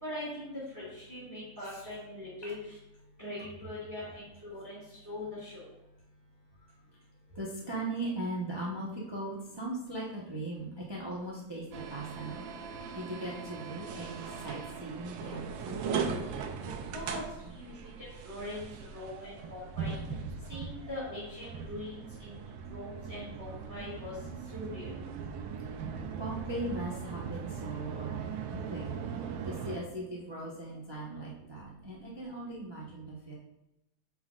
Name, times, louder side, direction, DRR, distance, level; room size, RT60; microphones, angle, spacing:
voice 1, 0.0-2.6 3.2-5.6 16.6-17.2 17.5-17.7 18.2-18.7 18.9-20.0 20.5-22.4 22.7-24.1 24.5-24.9, left 1 dB, 10° right, -8 dB, 1.8 m, -41 dB
voice 2, 7.3-11.6 11.9-12.4 12.9-15.9 17.5-17.6 18.9-19.0 20.5-20.6 26.2-29.0 29.4-33.3, right 2 dB, 25° right, -5 dB, 0.5 m, -39 dB
sound 1, 11.7-29.8, right 6 dB, 75° right, 1.3 m, -39 dB
7.6 x 5.6 x 2.4 m, 0.89 s
omnidirectional pair, 2.2 m